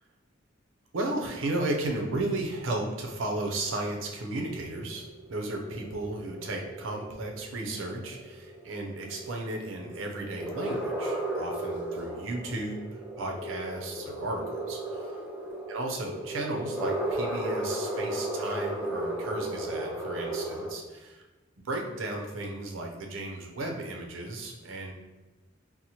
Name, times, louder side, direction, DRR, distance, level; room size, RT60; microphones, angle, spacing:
voice 1, 0.9-5.0 5.3-12.9 13.2-15.1 15.7-21.2 21.6-24.9, right 2 dB, 85° right, 1 dB, 0.5 m, -34 dB
sound 1, 3.6-20.7, right 1 dB, 5° right, 0.4 m, -35 dB
4.1 x 2.0 x 2.8 m, 1.1 s
head